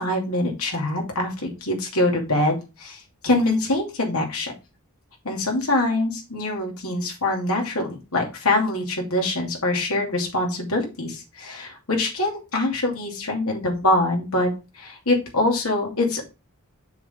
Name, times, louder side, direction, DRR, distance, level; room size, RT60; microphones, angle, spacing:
voice 1, 0.0-4.5 5.2-16.2, left 2 dB, 80° left, 0 dB, 2.8 m, -24 dB
6.9 x 6.5 x 3.7 m, 0.27 s
head